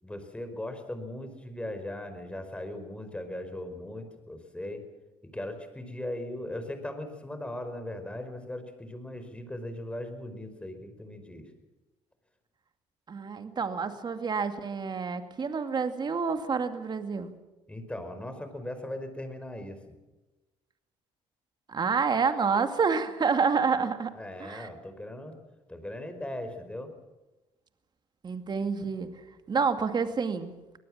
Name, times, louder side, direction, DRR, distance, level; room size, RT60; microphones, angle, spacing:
voice 1, 0.0-4.8 5.2-11.5 17.7-19.9 24.1-25.4 25.7-26.9, left 1 dB, 10° left, 8 dB, 4.9 m, -38 dB
voice 2, 13.1-17.3 21.7-24.1 24.4-24.7 28.2-29.1 29.5-30.5, right 5 dB, 35° right, 8 dB, 2.4 m, -28 dB
24.0 x 18.0 x 7.5 m, 1.1 s
supercardioid pair, 80°, 12 cm